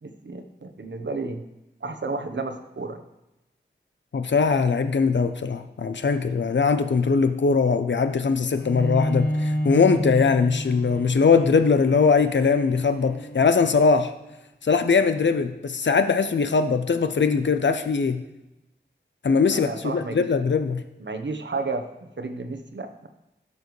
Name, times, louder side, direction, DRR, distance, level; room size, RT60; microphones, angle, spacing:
voice 1, 0.0-1.4 1.8-3.0 19.5-20.3 21.0-21.9 22.2-23.1, right 3 dB, 80° right, 7 dB, 1.0 m, -32 dB
voice 2, 4.1-14.1 14.6-18.2 19.2-20.8, left 5 dB, 80° left, 9 dB, 0.6 m, -21 dB
Bowed string instrument, 8.6-14.2, equal, 55° left, 1.6 m, -30 dB
16.5 x 6.8 x 3.2 m, 0.94 s
wide cardioid pair, 65°, 18 cm